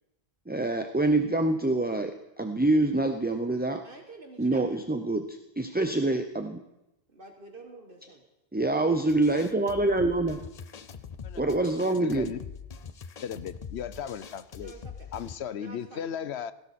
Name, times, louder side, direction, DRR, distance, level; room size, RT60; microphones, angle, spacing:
voice 1, 0.5-3.8 4.4-6.6 8.5-10.4 11.4-12.3, right 2 dB, 10° right, 0.6 m, -26 dB
voice 2, 3.8-4.6 7.1-8.2 14.6-15.1 15.5-16.1, right 3 dB, 55° right, 1.7 m, -48 dB
sound 1, 9.1-15.4, left 6 dB, 45° left, 0.7 m, -43 dB
voice 3, 11.9-12.4 13.2-14.7 15.1-16.5, left 8 dB, 85° left, 1.0 m, -36 dB
17.0 x 16.5 x 4.3 m
omnidirectional pair, 1.1 m